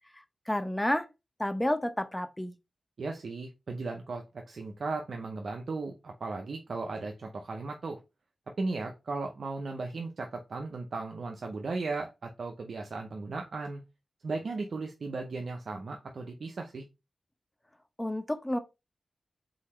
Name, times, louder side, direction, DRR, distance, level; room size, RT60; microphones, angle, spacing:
voice 1, 0.1-1.1 1.4-2.5 18.0-18.6, left 1 dB, 15° left, 0.7 m, -30 dB
voice 2, 3.0-8.0 8.6-13.8 14.2-16.8, right 3 dB, 75° right, 0.6 m, -36 dB
4.2 x 3.9 x 3.1 m
cardioid pair, 40°, 0 cm